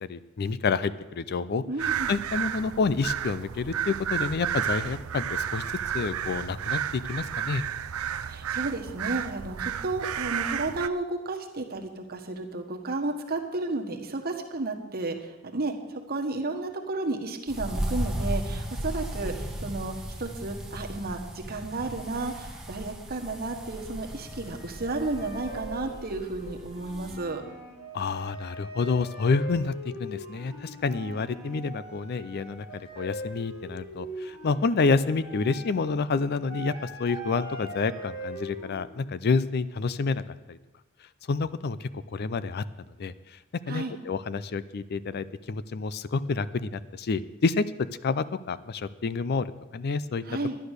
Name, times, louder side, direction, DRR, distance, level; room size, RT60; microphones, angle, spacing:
voice 1, 0.0-5.6 5.9-7.6 27.9-40.2 40.5-40.6 41.3-42.6 43.0-43.4 43.7-50.2, left 4 dB, 50° left, 16 dB, 0.4 m, -29 dB
voice 2, 1.7-2.1 8.3-19.9 20.2-27.4 43.7-44.0 50.2-50.6, right 2 dB, 45° right, 3 dB, 1.4 m, -32 dB
sound 1, 1.8-10.9, right 9 dB, 85° right, 0.5 m, -32 dB
sound 2, 17.5-27.2, right 1 dB, ahead, 1.3 m, -36 dB
sound 3, 20.4-21.6 21.8-22.6 22.9-38.8, right 1 dB, 80° left, 4.2 m, -42 dB
11.5 x 10.0 x 6.5 m, 1.1 s
head